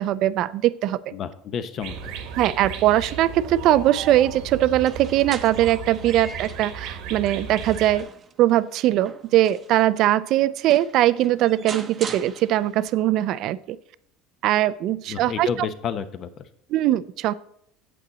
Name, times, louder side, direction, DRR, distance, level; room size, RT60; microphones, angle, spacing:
voice 1, 0.0-1.1 2.4-8.1 8.4-13.8 14.4-15.5 16.7-17.3, right 13 dB, 55° right, 16 dB, 0.4 m, -21 dB
voice 2, 1.1-2.1 15.1-16.5, left 7 dB, 45° left, 11 dB, 0.8 m, -30 dB
sound 1, 1.8-8.0, right 6 dB, 70° right, 1.4 m, -35 dB
sound 2, 4.7-6.8 7.3-9.9 10.4-10.5 10.7-12.9, right 6 dB, 30° right, 0.8 m, -41 dB
8.5 x 8.1 x 4.0 m, 0.69 s
supercardioid pair, 130°, 0 cm